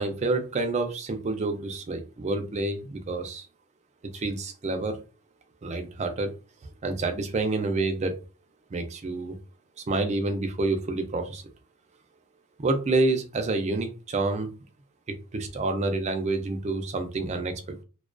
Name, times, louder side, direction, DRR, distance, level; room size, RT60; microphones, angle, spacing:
voice 1, 0.0-3.5 4.1-5.0 5.6-6.3 6.8-8.2 8.7-9.4 9.9-11.4 12.6-14.5 15.3-17.8, right 2 dB, 30° right, 6 dB, 0.4 m, -28 dB
2.3 x 2.2 x 2.4 m, 0.32 s
head